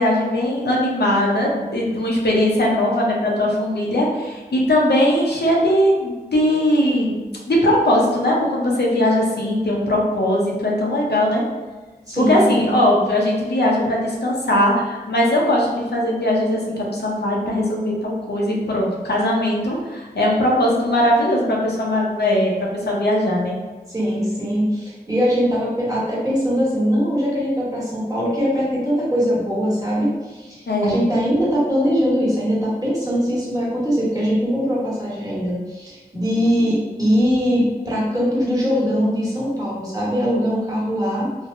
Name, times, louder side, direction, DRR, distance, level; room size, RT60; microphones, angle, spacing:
voice 1, 0.0-11.4 12.1-22.5 22.9-23.6 30.7-31.1, left 1 dB, 85° left, -3 dB, 0.6 m, -19 dB
voice 2, 12.1-12.8 23.9-41.3, equal, 20° right, -6 dB, 1.0 m, -21 dB
3.2 x 2.1 x 2.5 m, 1.3 s
wide cardioid pair, 50°, 17 cm